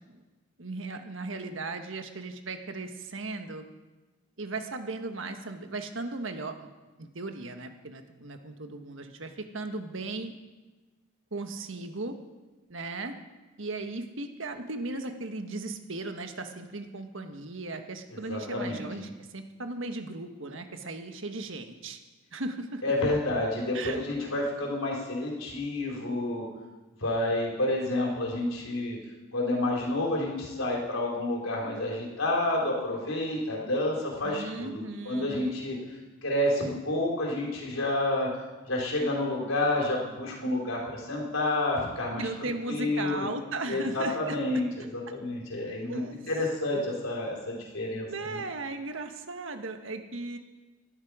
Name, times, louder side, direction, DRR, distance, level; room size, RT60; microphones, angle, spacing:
voice 1, 0.6-3.6 4.4-6.7 7.0-10.3 11.3-12.2 12.7-13.1 13.6-22.0 22.3-22.9 23.7-24.0 34.2-35.6 42.2-44.6 45.1-45.2 45.9-46.2 48.0-50.4, right 2 dB, 70° right, 6 dB, 1.4 m, -37 dB
voice 2, 18.1-18.9 22.8-26.4 27.0-29.0 29.3-35.8 36.2-38.3 38.7-43.2 43.7-48.4, left 1 dB, 85° left, -2 dB, 4.4 m, -29 dB
18.5 x 13.0 x 5.0 m, 1.2 s
head